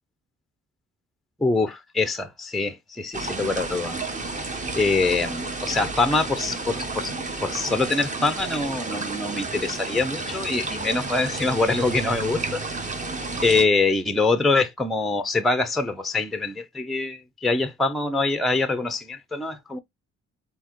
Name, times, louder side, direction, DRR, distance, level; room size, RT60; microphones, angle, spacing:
voice 1, 1.4-4.0 4.7-7.1 7.4-12.6 13.4-19.8, left 3 dB, ahead, 0.5 m, -24 dB
sound 1, 3.1-13.6, right 3 dB, 25° right, 0.9 m, -31 dB
4.6 x 3.4 x 2.9 m
cardioid pair, 90°, 30 cm